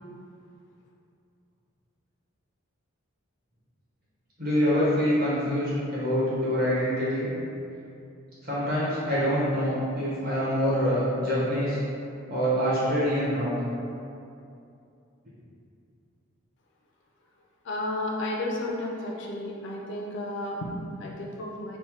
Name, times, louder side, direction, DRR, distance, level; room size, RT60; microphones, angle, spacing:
voice 1, 4.4-7.3 8.4-11.8 12.3-13.5, equal, 40° right, -9 dB, 0.9 m, -25 dB
voice 2, 17.6-21.8, left 1 dB, 55° left, -2 dB, 0.3 m, -32 dB
3.1 x 2.0 x 2.9 m, 2.5 s
head